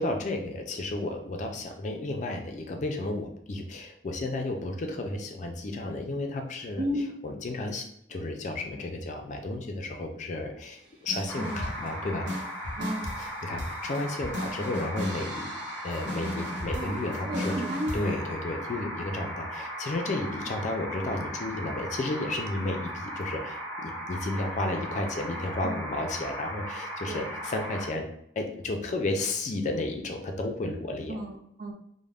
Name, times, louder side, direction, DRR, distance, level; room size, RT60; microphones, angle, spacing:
voice 1, 0.0-6.8 7.2-12.3 13.1-15.5 15.8-17.5 17.9-28.1 28.4-31.2, left 2 dB, 40° left, 3 dB, 0.4 m, -32 dB
sound 1, 11.1-11.9 12.3-18.1, equal, 80° right, 0.8 m, -36 dB
sound 2, 11.3-27.9, equal, 5° left, 0.8 m, -37 dB
voice 2, 12.8-13.1 16.7-17.0 17.3-18.1 20.2-20.4 25.6-25.8 27.1-27.3 31.1-31.7, equal, 55° right, 2 dB, 0.5 m, -33 dB
2.5 x 2.1 x 3.3 m, 0.72 s
head